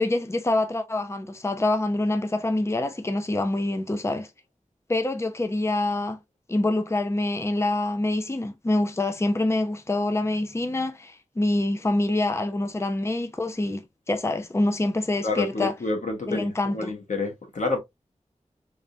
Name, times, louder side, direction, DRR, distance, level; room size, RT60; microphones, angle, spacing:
voice 1, 0.0-4.3 4.9-6.2 6.5-15.7 16.3-16.9, left 2 dB, 20° left, 0.6 m, -26 dB
voice 2, 15.2-17.8, left 3 dB, 85° left, 1.2 m, -28 dB
3.5 x 3.4 x 2.5 m
wide cardioid pair, 75°, 12 cm